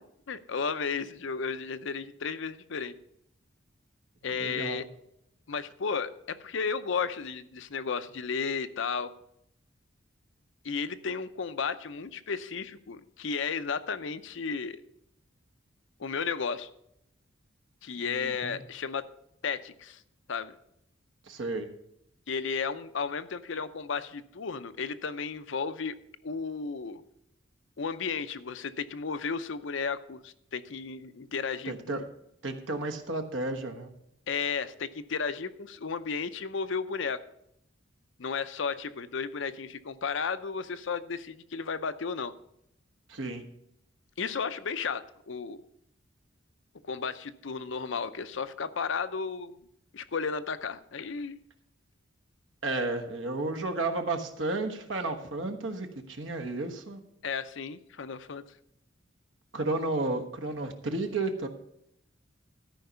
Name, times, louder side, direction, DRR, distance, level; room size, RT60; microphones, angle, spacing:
voice 1, 0.0-2.9 4.2-4.9 5.5-9.1 10.6-14.8 16.0-16.7 17.8-19.0 19.4-20.0 20.3-20.5 22.3-26.0 26.2-27.0 27.8-32.0 34.3-37.2 38.2-42.3 44.2-45.6 46.8-49.6 49.9-51.4 57.2-58.4, left 5 dB, 70° left, 12 dB, 0.6 m, -33 dB
voice 2, 4.4-4.8 18.1-18.6 21.3-21.7 31.7-32.0 32.4-33.9 43.1-43.4 52.6-57.0 59.5-61.5, right 2 dB, 70° right, 6 dB, 1.3 m, -32 dB
13.0 x 5.3 x 6.8 m, 0.76 s
head